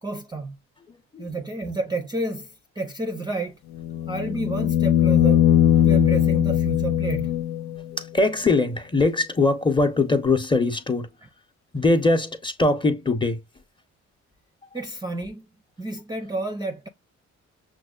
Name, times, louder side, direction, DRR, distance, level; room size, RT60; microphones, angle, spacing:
voice 1, 0.0-0.6 1.2-3.6 4.1-5.5 5.8-7.3 14.7-15.4 15.8-16.9, right 2 dB, 15° right, 0.5 m, -30 dB
voice 2, 0.9-1.3 7.9-11.1 11.7-13.4, left 3 dB, 15° left, 0.8 m, -22 dB
sound 1, 3.7-7.9 10.3-10.4, left 11 dB, 70° left, 0.5 m, -20 dB
6.0 x 2.2 x 2.3 m
cardioid pair, 90°, 30 cm